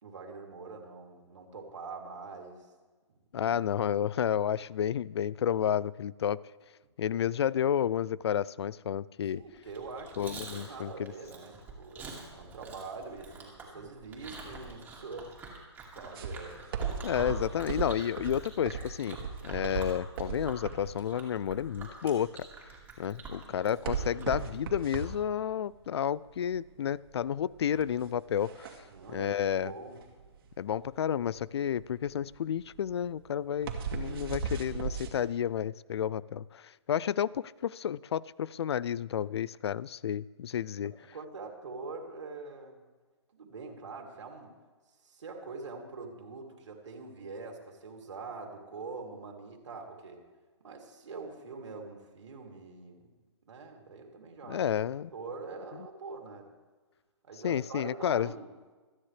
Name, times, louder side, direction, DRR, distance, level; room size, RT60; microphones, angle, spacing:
voice 1, 0.0-2.7 3.4-3.6 9.3-15.6 15.9-16.6 23.4-23.6 28.9-30.0 34.0-34.3 40.8-42.8 43.3-44.5 45.0-50.2 50.6-53.1 53.4-54.6 55.1-56.5 57.2-58.5, right 4 dB, 75° right, 1 dB, 3.2 m, -44 dB
voice 2, 3.3-6.4 7.0-9.4 10.2-11.1 17.0-19.2 19.4-22.3 23.0-28.7 29.1-29.7 30.6-36.6 36.9-40.9 54.5-55.1 57.4-58.3, left 9 dB, 65° left, 22 dB, 0.4 m, -31 dB
Chewing mastication, 9.6-24.5, right 4 dB, 10° right, 2.4 m, -46 dB
sound 1, 16.1-35.1, right 6 dB, 55° right, 2.3 m, -38 dB
26.5 x 9.7 x 3.4 m, 1.3 s
hypercardioid pair, 150°, 15 cm